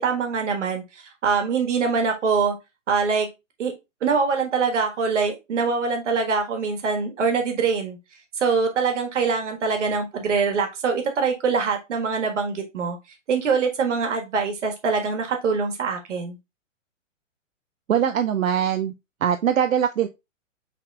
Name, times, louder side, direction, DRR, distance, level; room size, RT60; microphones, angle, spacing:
voice 1, 0.0-2.5 2.9-3.3 3.6-3.7 4.0-8.0 8.4-13.0 13.3-16.4, right 5 dB, 65° right, 1.5 m, -24 dB
voice 2, 17.9-18.9 19.2-20.1, right 9 dB, 85° right, 0.5 m, -22 dB
5.8 x 3.6 x 2.3 m
figure-of-eight pair, 120°, 39 cm